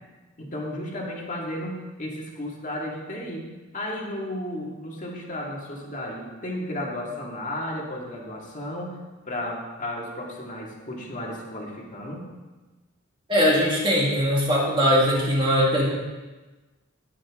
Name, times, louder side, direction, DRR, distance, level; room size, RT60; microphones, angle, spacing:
voice 1, 0.4-3.5 3.7-9.0 9.3-12.3, left 1 dB, 35° left, -2 dB, 2.2 m, -33 dB
voice 2, 13.3-16.0, equal, 25° right, -4 dB, 2.2 m, -21 dB
18.0 x 7.4 x 3.7 m, 1.2 s
head